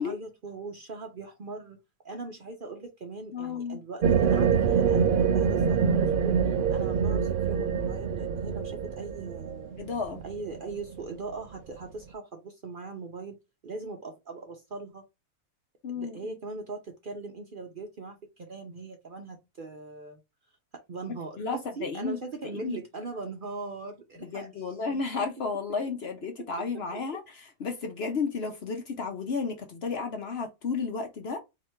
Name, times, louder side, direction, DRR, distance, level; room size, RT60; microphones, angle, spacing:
voice 1, 0.0-1.8 2.0-9.8 10.2-13.4 13.6-15.0 15.9-20.2 20.7-25.1 26.7-27.0, right 3 dB, 50° right, 0.7 m, -40 dB
voice 2, 3.3-3.8 9.8-10.2 15.8-16.4 21.4-22.2 22.5-22.8 24.2-31.4, left 4 dB, 55° left, 0.8 m, -33 dB
sound 1, 4.0-11.3, right 6 dB, 80° right, 0.4 m, -25 dB
3.3 x 2.8 x 4.4 m
omnidirectional pair, 1.5 m